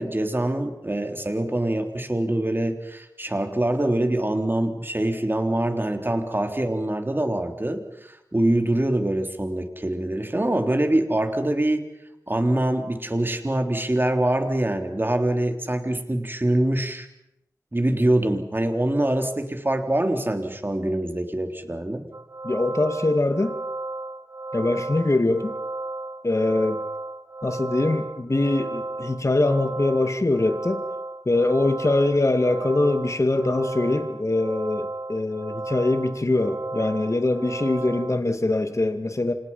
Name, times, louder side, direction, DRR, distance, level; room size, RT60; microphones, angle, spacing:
voice 1, 0.0-11.9 12.3-17.1 17.7-22.1, right 1 dB, 30° right, 5 dB, 3.5 m, -24 dB
sound 1, 22.1-38.2, right 2 dB, 45° right, 1.3 m, -34 dB
voice 2, 22.4-23.5 24.5-25.6 26.2-26.8 27.4-30.8 31.3-39.3, left 2 dB, 45° left, 7 dB, 2.3 m, -23 dB
30.0 x 26.5 x 5.7 m, 0.82 s
wide cardioid pair, 55°, 7 cm